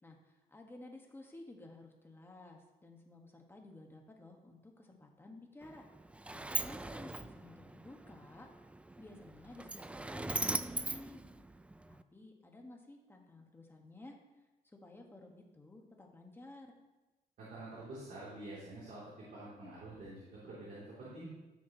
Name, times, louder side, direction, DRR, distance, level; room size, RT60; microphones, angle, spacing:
voice 1, 0.0-5.8 6.3-8.5 9.0-11.2 11.9-14.2 14.7-16.8, left 2 dB, 15° left, 1 dB, 1.5 m, -54 dB
Sliding door, 5.6-12.0, right 2 dB, 10° right, 0.3 m, -41 dB
voice 2, 17.4-21.3, right 2 dB, 65° right, -8 dB, 3.1 m, -47 dB
14.5 x 6.2 x 3.0 m, 1.1 s
cardioid pair, 105°, 15 cm